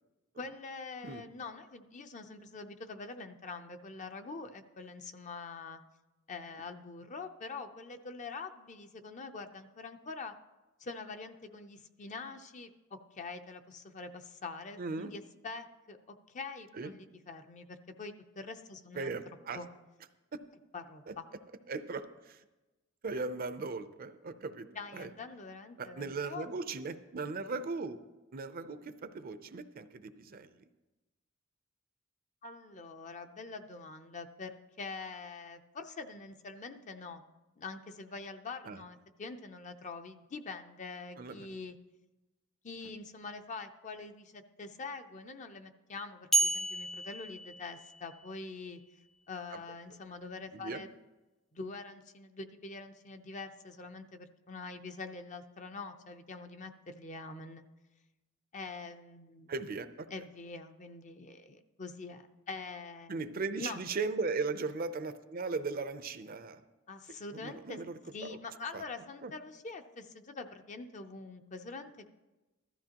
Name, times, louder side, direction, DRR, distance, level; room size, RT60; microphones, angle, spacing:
voice 1, 0.4-5.8 6.3-10.3 10.8-19.1 19.5-19.7 20.7-21.2 24.8-26.5 32.4-37.2 37.6-41.8 42.6-48.8 49.3-50.9 51.5-57.6 58.5-59.5 60.1-63.8 66.9-67.8 68.1-72.1, left 4 dB, 40° left, 7 dB, 0.6 m, -45 dB
voice 2, 14.8-15.1 16.8-16.9 18.9-19.6 20.3-20.4 21.1-21.2 21.7-22.4 23.0-24.7 24.9-25.1 25.8-28.0 28.3-30.6 38.7-38.8 41.2-41.5 49.5-49.6 50.5-50.8 59.5-60.1 63.1-66.6 67.3-68.0 68.3-68.4 68.7-68.8 69.2-69.3, right 4 dB, 45° right, 11 dB, 0.6 m, -38 dB
sound 1, 46.3-48.4, right 2 dB, ahead, 0.3 m, -32 dB
15.0 x 13.0 x 2.9 m, 1.1 s
head